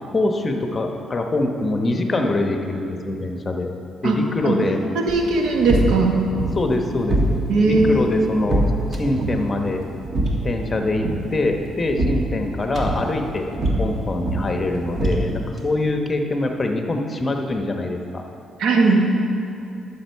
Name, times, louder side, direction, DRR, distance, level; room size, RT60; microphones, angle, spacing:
voice 1, 0.1-3.7 4.0-4.8 6.5-7.4 7.6-8.7 9.0-9.8 10.4-13.5 13.8-18.2, left 2 dB, 30° left, 4 dB, 1.0 m, -24 dB
voice 2, 4.0-6.2 7.5-8.1 18.6-19.1, right 3 dB, 80° right, 1 dB, 1.3 m, -19 dB
sound 1, 5.1-15.6, right 1 dB, 45° right, 1.6 m, -25 dB
11.5 x 7.1 x 4.6 m, 2.5 s
cardioid pair, 90°, 0 cm